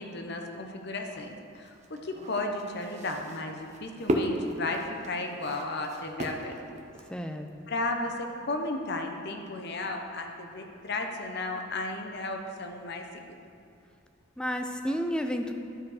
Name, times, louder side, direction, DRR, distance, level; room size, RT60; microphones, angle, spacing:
voice 1, 0.0-6.5 7.7-13.4, left 2 dB, 55° left, 3 dB, 0.8 m, -34 dB
sound 1, 1.1-7.3, equal, 35° right, 0.7 m, -34 dB
voice 2, 7.1-7.5 14.4-15.5, equal, 5° left, 5 dB, 0.4 m, -31 dB
12.0 x 4.7 x 4.9 m, 2.4 s
head